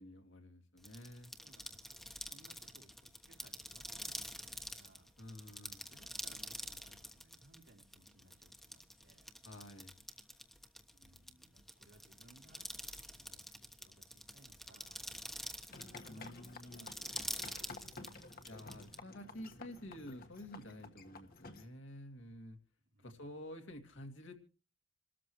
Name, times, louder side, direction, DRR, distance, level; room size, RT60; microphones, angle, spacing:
voice 1, 0.0-1.3 5.2-5.9 9.4-10.0 16.1-16.9 18.5-22.6 23.0-24.4, left 1 dB, 70° left, 4 dB, 2.3 m, -50 dB
sound 1, 0.8-19.0, equal, ahead, 1.2 m, -47 dB
voice 2, 1.3-5.1 5.8-9.3 10.6-15.0 16.0-18.8 22.9-23.3, right 1 dB, 75° right, 1 dB, 3.3 m, -65 dB
sound 2, 15.7-21.7, left 3 dB, 50° left, 1.6 m, -52 dB
28.0 x 13.5 x 3.1 m, 0.36 s
head